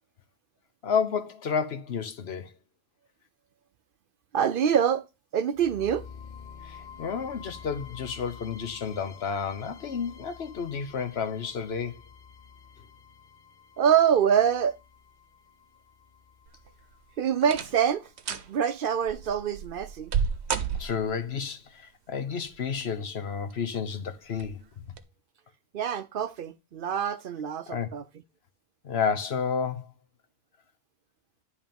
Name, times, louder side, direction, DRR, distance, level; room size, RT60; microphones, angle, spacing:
voice 1, 0.8-2.5 6.6-12.0 20.8-24.6 27.7-27.9 28.8-29.9, left 6 dB, 70° left, 1.2 m, -31 dB
voice 2, 4.3-5.1 5.3-6.1 13.8-14.8 17.2-20.1 25.7-28.0, right 8 dB, 60° right, 0.7 m, -25 dB
sound 1, 5.5-19.5, left 6 dB, 45° left, 1.0 m, -49 dB
sound 2, 16.5-16.9 17.4-17.9 18.2-18.5 19.1-21.3 22.5-23.0 23.5-23.6 24.3-24.5 24.9-25.0, right 6 dB, 80° right, 1.0 m, -32 dB
10.0 x 3.6 x 5.2 m
omnidirectional pair, 1.1 m